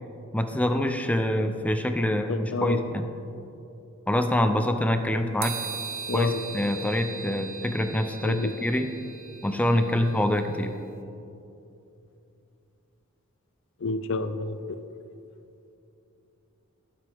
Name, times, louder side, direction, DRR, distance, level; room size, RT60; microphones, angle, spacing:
voice 1, 0.3-3.1 4.1-5.6 6.1-8.9 9.4-10.7, left 1 dB, 5° left, 6 dB, 0.6 m, -25 dB
voice 2, 2.3-2.8 6.1-6.4 8.2-8.5 13.8-14.8, left 3 dB, 60° left, 10 dB, 0.5 m, -30 dB
sound 1, 5.4-10.7, right 6 dB, 75° right, 1.0 m, -39 dB
21.0 x 7.7 x 3.5 m, 2.8 s
head